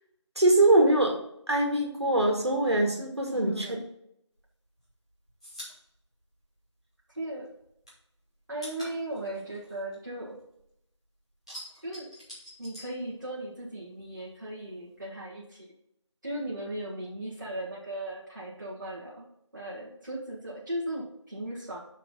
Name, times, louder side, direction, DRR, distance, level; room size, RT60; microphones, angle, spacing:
voice 1, 0.4-1.1 1.5-3.7, right 2 dB, 60° right, 1 dB, 2.1 m, -23 dB
voice 2, 3.3-3.8 7.1-7.5 8.5-10.4 11.8-12.1 12.6-15.7 16.2-21.8, right 1 dB, 40° right, -5 dB, 1.8 m, -37 dB
sound 1, 4.4-7.2 7.4-10.7 11.0-13.7 13.9-15.0, equal, 10° left, 2.1 m, -47 dB
6.0 x 5.9 x 5.3 m, 0.77 s
figure-of-eight pair, 180°, 16 cm